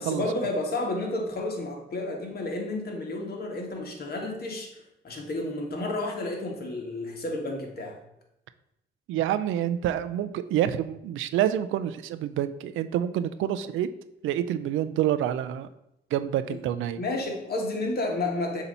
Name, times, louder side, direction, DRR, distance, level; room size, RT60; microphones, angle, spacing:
voice 1, 0.0-4.7 5.0-7.9 16.5-16.6 17.0-18.6, left 2 dB, 50° left, 0 dB, 1.6 m, -31 dB
voice 2, 9.1-13.9 14.2-15.7 16.1-17.0, right 11 dB, 80° right, 12 dB, 0.4 m, -27 dB
7.0 x 2.9 x 5.3 m, 0.81 s
cardioid pair, 90°, 20 cm